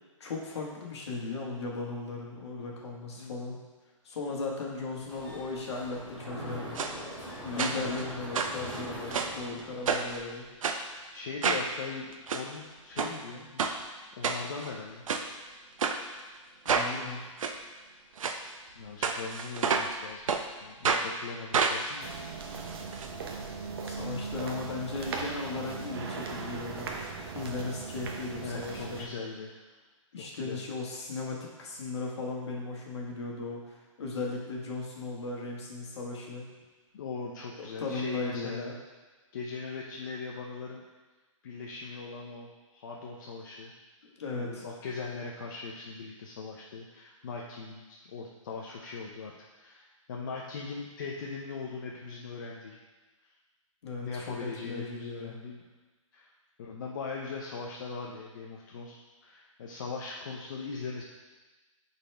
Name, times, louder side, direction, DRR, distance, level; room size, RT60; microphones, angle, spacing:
voice 1, 0.2-3.6 4.0-6.8 7.4-10.4 16.6-17.2 23.8-26.9 27.3-29.1 30.1-36.5 37.6-38.7 44.0-44.7 53.8-55.4, left 3 dB, 55° left, -1 dB, 1.6 m, -37 dB
voice 2, 3.2-3.5 7.5-7.8 11.1-13.7 14.2-15.1 18.8-20.2 20.6-22.1 28.4-29.5 30.2-30.7 36.9-38.8 39.3-40.8 41.4-43.7 44.4-52.8 54.0-55.6 56.1-56.3 56.6-61.0, left 4 dB, 35° left, -2 dB, 0.6 m, -40 dB
Mechanisms, 5.0-10.1, equal, 10° right, 2.1 m, -41 dB
sound 1, 6.8-6.9 7.6-8.0 8.3-9.4 9.9-10.2 10.6-10.8 11.4-11.7 12.1-12.4 13.0-13.1 13.6-13.8 14.2-14.7 15.1-15.3 15.8-16.0 16.7-16.9 17.4-17.5 18.2-18.4 19.0-20.0 20.3-20.4 20.8-21.1 21.5-23.1 23.4-23.5 23.7-23.8, right 5 dB, 75° right, 0.7 m, -29 dB
sound 2, 22.0-29.1, right 4 dB, 45° right, 0.8 m, -38 dB
9.4 x 4.2 x 3.4 m, 1.2 s
hypercardioid pair, 170°, 17 cm